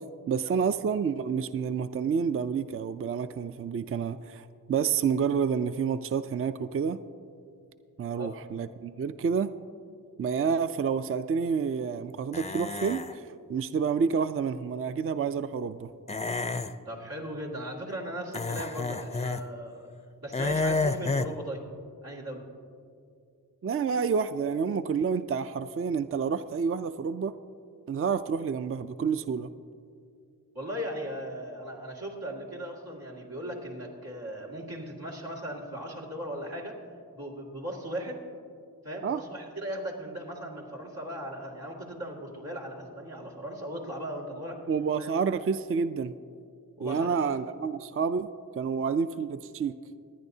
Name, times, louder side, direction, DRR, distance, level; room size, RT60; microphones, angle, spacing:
voice 1, 0.3-7.0 8.0-9.5 10.2-15.9 23.6-27.3 27.9-29.5 39.0-39.2 44.7-46.1 46.8-48.3 48.6-49.7, right 6 dB, 40° right, 12 dB, 0.4 m, -29 dB
sound 1, 12.3-13.1 16.1-16.7 18.3-19.4 20.3-21.3, left 3 dB, 20° left, 0.4 m, -30 dB
voice 2, 16.8-19.9 20.2-21.6 22.0-22.4 30.5-36.8 37.1-38.2 38.8-44.6 45.0-45.1 46.8-47.3, equal, 90° right, -4 dB, 2.3 m, -38 dB
25.5 x 9.8 x 2.7 m, 2.4 s
cardioid pair, 60°, 35 cm